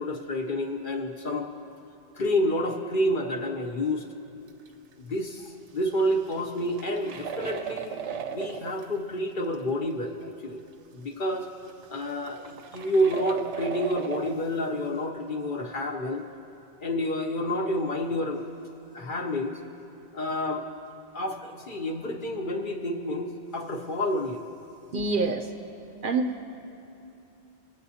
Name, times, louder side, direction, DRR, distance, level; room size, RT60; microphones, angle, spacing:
voice 1, 0.0-1.5 2.1-4.1 5.0-7.9 8.3-10.6 10.9-11.5 11.9-16.2 16.8-18.4 18.9-19.5 20.1-20.6 21.1-24.4, equal, 50° left, 2 dB, 0.9 m, -29 dB
sound 1, 4.5-4.7 4.9-5.0 5.8-8.9 9.5-9.6 10.2-10.3 11.4-11.5 11.7-14.5, right 7 dB, 85° right, 0.9 m, -37 dB
voice 2, 24.9-25.5 26.0-26.4, right 3 dB, 55° right, 4 dB, 0.7 m, -26 dB
22.5 x 8.3 x 2.8 m, 3.0 s
omnidirectional pair, 1.2 m